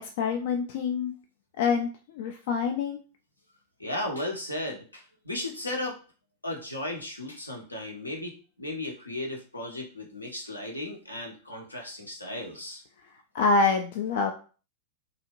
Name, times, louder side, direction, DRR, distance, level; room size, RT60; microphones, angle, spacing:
voice 1, 0.0-1.1 1.6-3.0 13.3-14.3, left 4 dB, 55° left, 5 dB, 0.3 m, -26 dB
voice 2, 3.8-6.0 6.4-12.8, left 1 dB, 85° left, -1 dB, 0.7 m, -35 dB
2.8 x 2.4 x 2.9 m, 0.37 s
figure-of-eight pair, 90°, 0 cm